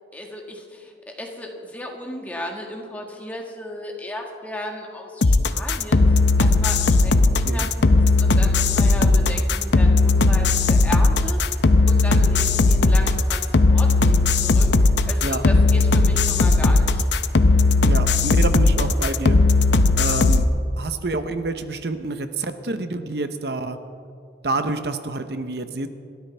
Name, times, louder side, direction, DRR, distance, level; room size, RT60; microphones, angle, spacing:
voice 1, 0.1-6.0 6.4-17.1, left 1 dB, 10° left, 0 dB, 1.7 m, -35 dB
sound 1, 5.2-20.4, left 3 dB, 80° left, 0.7 m, -17 dB
voice 2, 17.8-19.4 20.0-20.5 20.8-23.8 24.4-25.9, right 2 dB, 65° right, 9 dB, 0.8 m, -28 dB
29.0 x 12.5 x 3.4 m, 2.4 s
head